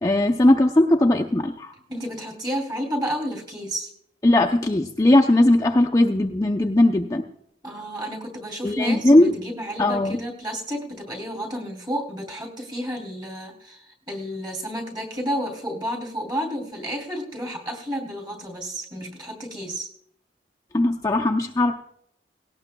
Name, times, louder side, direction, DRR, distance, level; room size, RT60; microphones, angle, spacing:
voice 1, 0.0-1.7 4.2-7.2 8.6-9.3 9.8-10.2 20.7-21.7, left 1 dB, 20° left, 1 dB, 0.5 m, -18 dB
voice 2, 1.9-3.9 7.6-19.9, equal, 25° right, 2 dB, 2.8 m, -31 dB
18.0 x 17.5 x 2.2 m, 0.72 s
head